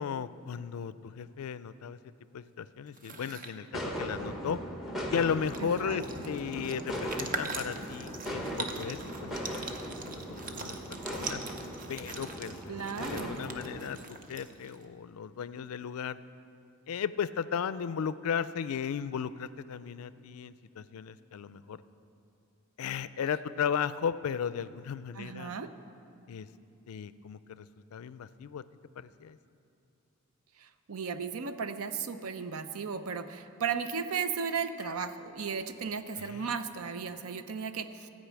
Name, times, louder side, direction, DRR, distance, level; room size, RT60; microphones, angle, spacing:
voice 1, 0.0-2.0 2.3-4.6 5.1-9.7 10.3-11.4 11.9-16.2 16.9-21.8 22.8-25.5 26.3-26.5 26.9-27.7 27.9-28.6 29.0-29.4 36.2-36.5, left 7 dB, 80° left, 15 dB, 0.4 m, -35 dB
sound 1, 2.9-3.5 5.0-5.1 5.3-14.8, right 4 dB, 40° right, 0.7 m, -42 dB
sound 2, 3.7-13.8, equal, ahead, 1.1 m, -38 dB
voice 2, 5.6-6.0 12.7-13.4 25.2-25.7 30.6-38.1, right 6 dB, 80° right, 10 dB, 0.6 m, -35 dB
13.5 x 5.3 x 8.2 m, 2.6 s
head